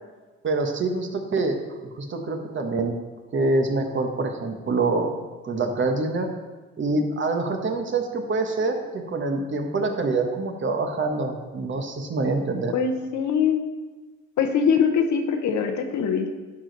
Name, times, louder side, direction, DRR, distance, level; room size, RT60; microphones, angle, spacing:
voice 1, 0.4-3.0 3.3-5.1 5.4-6.3 6.8-12.7, right 3 dB, 40° right, 4 dB, 1.2 m, -25 dB
voice 2, 12.7-13.6 14.4-16.3, left 6 dB, 70° left, 5 dB, 1.1 m, -22 dB
11.0 x 5.0 x 4.0 m, 1.3 s
cardioid pair, 90°, 30 cm